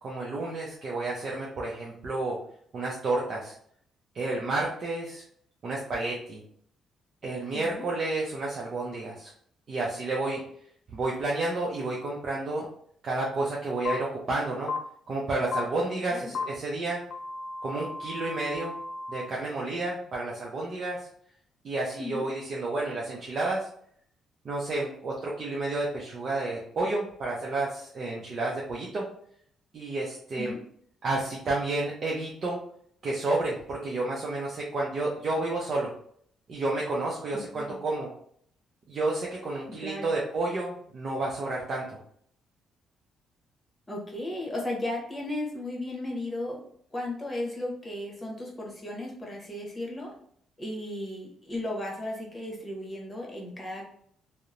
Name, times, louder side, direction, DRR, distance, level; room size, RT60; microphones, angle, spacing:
voice 1, 0.0-2.4 2.7-3.5 4.1-5.2 5.6-6.4 7.2-9.3 9.7-10.4 10.9-12.7 13.0-14.7 15.1-17.0 17.6-18.7 19.1-21.0 21.6-23.7 24.4-29.0 29.7-30.5 31.0-32.6 33.0-35.9 36.5-38.1 38.9-41.8, right 2 dB, 50° right, -3 dB, 0.5 m, -30 dB
voice 2, 7.5-7.8 16.1-16.3 22.0-22.3 30.3-30.6 37.5-37.8 39.7-40.1 43.9-46.6 46.9-50.1 50.6-53.9, left 1 dB, 20° left, -1 dB, 1.0 m, -35 dB
sound 1, 13.8-13.9 14.7-14.8 15.5-15.6 16.3-16.4 17.1-19.2, left 4 dB, 65° left, 0.4 m, -34 dB
2.8 x 2.0 x 2.5 m, 0.63 s
cardioid pair, 90°, 0 cm